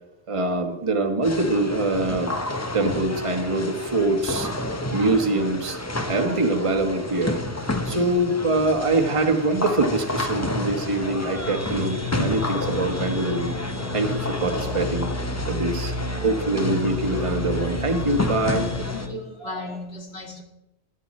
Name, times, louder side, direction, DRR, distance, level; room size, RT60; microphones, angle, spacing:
voice 1, 0.3-2.3 2.7-4.5 4.9-5.8 6.1-7.4 7.8-13.6 13.9-15.1 15.5-15.9 16.2-18.7, right 2 dB, 25° right, 4 dB, 1.3 m, -24 dB
sound 1, 1.2-19.1, left 2 dB, 15° left, 0.7 m, -30 dB
sound 2, 11.3-19.1, left 2 dB, 45° right, 1.8 m, -31 dB
voice 2, 18.9-20.4, left 1 dB, 60° left, 2 dB, 2.4 m, -36 dB
20.0 x 9.0 x 4.3 m, 0.90 s
omnidirectional pair, 1.2 m